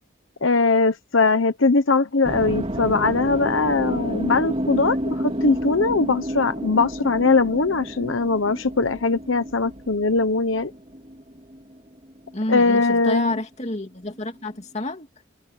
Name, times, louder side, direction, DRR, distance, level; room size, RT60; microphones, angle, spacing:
voice 1, 0.4-10.7 12.5-13.3, left 3 dB, 85° left, 1.1 m, -21 dB
sound 1, 2.2-12.4, equal, 30° right, 2.9 m, -30 dB
voice 2, 12.3-15.1, left 1 dB, 35° left, 2.5 m, -29 dB
head